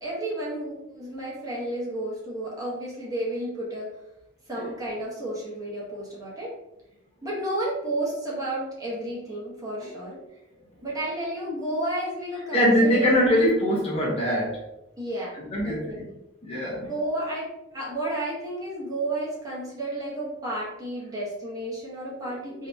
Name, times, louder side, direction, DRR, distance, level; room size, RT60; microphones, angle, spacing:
voice 1, 0.0-3.9 4.5-6.5 7.2-10.2 10.8-13.1 15.0-15.3 15.6-16.1 16.8-17.5 17.7-22.7, right 1 dB, 20° right, -6 dB, 1.0 m, -32 dB
voice 2, 12.5-14.6 15.3-16.1 16.4-16.9, equal, 30° left, -4 dB, 0.8 m, -23 dB
2.8 x 2.7 x 3.3 m, 0.89 s
head